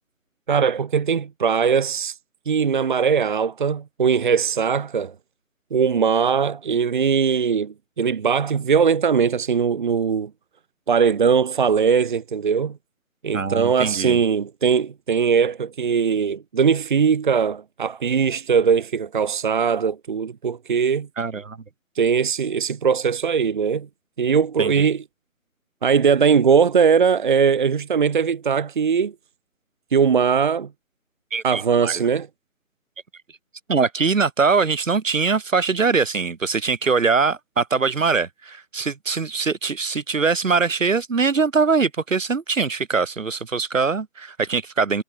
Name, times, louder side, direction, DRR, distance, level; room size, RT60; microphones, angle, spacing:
voice 1, 0.5-2.2 2.4-5.1 5.7-10.3 10.9-12.8 13.2-21.1 21.9-23.9 24.2-25.0 25.8-29.1 29.9-30.7 31.4-32.3, right 6 dB, 35° right, 1.7 m, -20 dB
voice 2, 13.3-14.2 21.2-21.6 24.6-24.9 31.3-32.0 33.7-45.0, right 4 dB, 65° right, 3.2 m, -22 dB
figure-of-eight pair, 165°, 42 cm